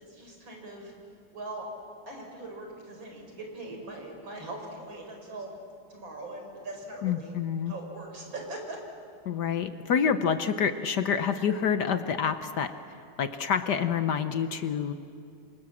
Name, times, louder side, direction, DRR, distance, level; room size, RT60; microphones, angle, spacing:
voice 1, 0.1-0.9 1.3-1.7 2.1-5.5 5.9-7.3 7.7-8.8, right 2 dB, 70° right, 2 dB, 5.3 m, -41 dB
voice 2, 7.0-7.7 9.2-12.7 13.2-14.9, left 7 dB, 60° left, 10 dB, 1.3 m, -27 dB
28.0 x 25.5 x 7.3 m, 2.4 s
omnidirectional pair, 2.2 m